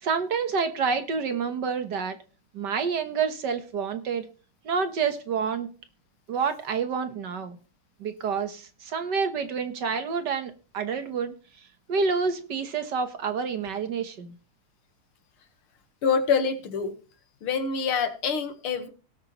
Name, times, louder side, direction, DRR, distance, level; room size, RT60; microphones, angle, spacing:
voice 1, 0.0-2.2 2.5-4.3 4.6-5.7 6.3-7.6 8.0-11.3 11.9-14.3, right 5 dB, 60° right, 8 dB, 1.6 m, -28 dB
voice 2, 16.0-16.9 17.4-18.9, left 6 dB, 85° left, 8 dB, 2.3 m, -26 dB
18.5 x 8.2 x 3.1 m, 0.36 s
omnidirectional pair, 2.3 m